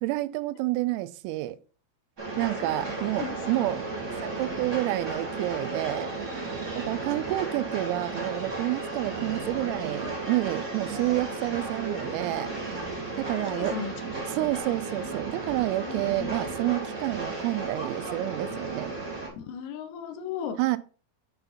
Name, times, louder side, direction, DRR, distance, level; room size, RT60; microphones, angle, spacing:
voice 1, 0.0-1.6 2.4-3.8 4.2-6.1 6.8-12.5 13.2-13.7 14.3-19.0 20.6-20.8, right 17 dB, 90° right, 3.2 m, -29 dB
Train, 2.2-19.3, right 3 dB, 40° right, 0.9 m, -34 dB
voice 2, 2.6-3.7 13.2-13.9 15.8-16.3 18.4-18.6 19.3-20.6, left 7 dB, 90° left, 3.3 m, -37 dB
8.8 x 4.0 x 4.1 m
omnidirectional pair, 5.8 m